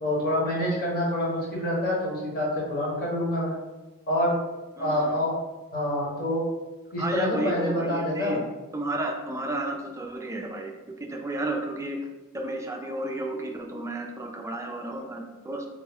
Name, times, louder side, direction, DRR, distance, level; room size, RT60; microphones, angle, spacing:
voice 1, 0.0-3.6 4.1-4.4 4.8-5.3 5.7-6.4 6.9-8.4, left 1 dB, 45° left, -5 dB, 1.1 m, -26 dB
voice 2, 4.8-5.2 7.0-8.4 8.7-12.0 12.3-15.7, right 2 dB, 15° right, 2 dB, 0.3 m, -32 dB
3.7 x 2.1 x 3.4 m, 1.2 s
head